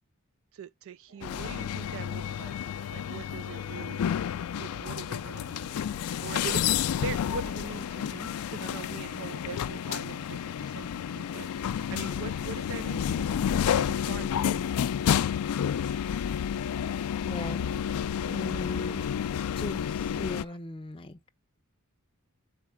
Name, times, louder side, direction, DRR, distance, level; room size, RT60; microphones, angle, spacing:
voice 1, 0.5-2.6 2.9-4.1 4.6-5.8 6.2-13.3 13.8-14.7, right 6 dB, 65° right, 0.4 m, -42 dB
sound 1, 1.1-12.4, right 2 dB, 85° right, 1.9 m, -58 dB
sound 2, 1.2-20.4, left 9 dB, 85° left, 0.3 m, -30 dB
Alarm, 2.2-20.6, right 2 dB, 25° right, 1.2 m, -58 dB
voice 2, 17.2-17.7 18.2-19.1 19.5-21.3, left 2 dB, 25° left, 0.5 m, -38 dB
6.4 x 4.1 x 4.8 m
head